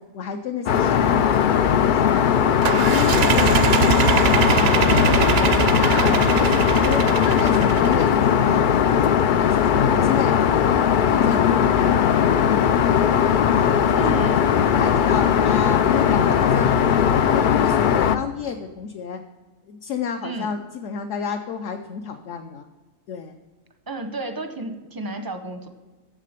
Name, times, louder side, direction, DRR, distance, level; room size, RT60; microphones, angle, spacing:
voice 1, 0.0-2.3 2.7-5.3 5.7-6.2 6.6-8.6 9.2-13.0 13.5-14.3 14.7-19.2 19.7-22.7 23.1-23.4, left 6 dB, 65° left, 4 dB, 0.9 m, -31 dB
Aircraft, 0.7-18.2, left 8 dB, 80° left, 0.4 m, -18 dB
sound 1, 2.6-8.2, right 8 dB, 60° right, 0.7 m, -22 dB
voice 2, 5.9-6.3 13.9-14.4 20.2-20.5 23.9-25.7, right 2 dB, 25° right, 7 dB, 0.5 m, -32 dB
7.5 x 7.4 x 6.6 m, 1.2 s
omnidirectional pair, 1.4 m